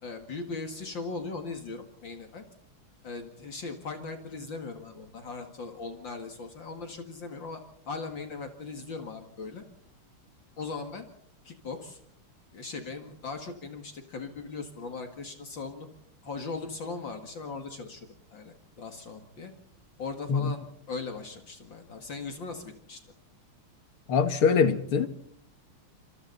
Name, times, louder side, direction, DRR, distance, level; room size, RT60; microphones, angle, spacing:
voice 1, 0.0-2.4 3.0-9.6 10.6-11.1 11.4-12.0 12.5-15.9 16.2-19.5 20.0-23.0, left 4 dB, 60° left, 2.9 m, -39 dB
voice 2, 24.1-25.1, left 6 dB, 80° left, 2.6 m, -23 dB
28.0 x 27.5 x 4.2 m
omnidirectional pair, 2.4 m